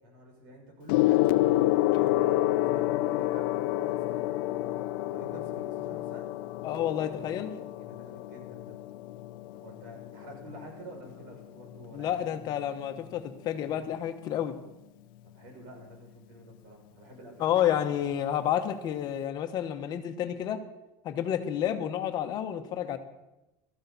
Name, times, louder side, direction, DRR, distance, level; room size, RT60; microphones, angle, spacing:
voice 1, 0.0-4.3 5.0-6.3 7.8-8.8 9.5-12.3 15.2-17.6 17.9-18.0, right 1 dB, 85° right, 0 dB, 6.3 m, -49 dB
Gong, 0.9-10.6 11.6-11.9, left 16 dB, 85° left, 0.5 m, -28 dB
voice 2, 6.6-7.5 11.9-14.5 17.4-20.6 21.0-23.0, left 10 dB, 35° left, 7 dB, 1.1 m, -30 dB
17.5 x 14.0 x 4.1 m, 0.96 s
cardioid pair, 165°, 11 cm